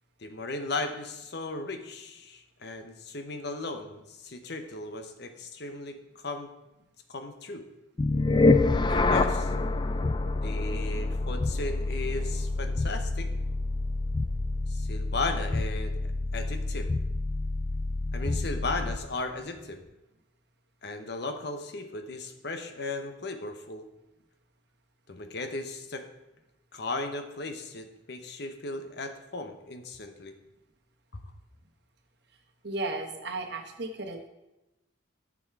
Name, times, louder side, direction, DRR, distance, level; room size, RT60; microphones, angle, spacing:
voice 1, 0.2-6.5 7.1-7.6 8.9-9.5 10.4-13.3 14.7-16.9 18.1-19.8 20.8-23.8 25.1-26.0 26.7-30.3 31.1-31.2, left 2 dB, 55° left, 7 dB, 0.9 m, -36 dB
sound 1, 8.0-19.1, left 2 dB, 25° left, 0.3 m, -27 dB
voice 2, 32.6-34.3, right 2 dB, 55° right, 5 dB, 1.2 m, -34 dB
11.0 x 6.3 x 4.6 m, 0.97 s
head